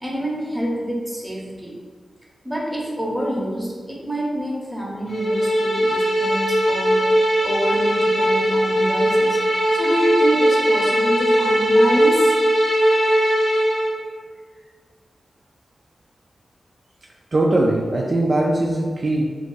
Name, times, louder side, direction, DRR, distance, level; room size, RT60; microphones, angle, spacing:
voice 1, 0.0-1.7 2.4-7.1 7.4-9.4 9.7-12.3, right 1 dB, ahead, -4 dB, 0.8 m, -27 dB
sound 1, 5.1-13.9, equal, 65° left, 1.0 m, -19 dB
voice 2, 17.3-19.2, right 1 dB, 45° right, -2 dB, 0.4 m, -20 dB
2.6 x 2.5 x 3.7 m, 1.5 s
cardioid pair, 75°, 0 cm